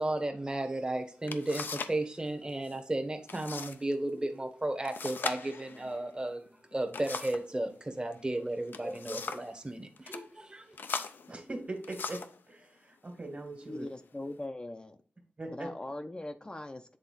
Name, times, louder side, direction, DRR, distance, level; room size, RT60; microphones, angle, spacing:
voice 1, 0.0-10.8, right 1 dB, 25° right, 5 dB, 1.1 m, -34 dB
sound 1, 0.8-0.9 1.3-2.0 2.3-2.8 3.3-3.8 4.1-4.2 4.9-7.5 8.5-9.5 10.0-10.2 10.8-12.4 13.2-13.3 13.9-14.4, left 5 dB, 75° left, 0.5 m, -40 dB
voice 2, 11.3-13.9 15.4-15.7, right 2 dB, 40° right, 4 dB, 1.9 m, -41 dB
voice 3, 13.7-15.0 15.5-17.0, left 1 dB, 25° left, 6 dB, 0.6 m, -40 dB
7.9 x 3.5 x 4.0 m, 0.40 s
cardioid pair, 50°, 3 cm